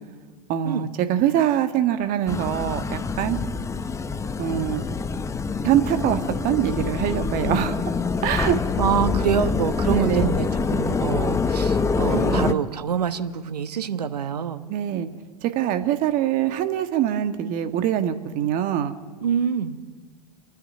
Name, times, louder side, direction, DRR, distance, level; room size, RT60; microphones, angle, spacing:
voice 1, 0.5-3.4 4.4-4.8 5.6-7.8 8.2-8.6 9.9-10.3 12.1-12.6 14.7-15.1 15.4-18.9, right 10 dB, 40° right, 9 dB, 1.6 m, -23 dB
sound 1, 2.3-12.5, left 4 dB, 15° left, 0.9 m, -25 dB
voice 2, 8.8-14.6 19.2-19.8, right 7 dB, 80° right, 11 dB, 1.2 m, -26 dB
28.5 x 10.5 x 9.5 m, 1.5 s
hypercardioid pair, 95°, 20 cm